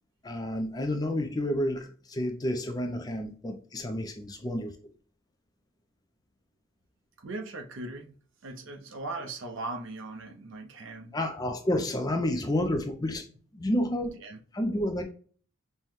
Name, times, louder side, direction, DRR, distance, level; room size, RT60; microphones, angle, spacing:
voice 1, 0.2-4.9 11.1-13.3 13.5-14.2 14.5-15.0, left 1 dB, 15° left, 0.4 m, -30 dB
voice 2, 7.2-8.2 8.4-11.1 14.2-14.4, right 2 dB, 60° right, 0.6 m, -39 dB
5.5 x 2.2 x 3.1 m
head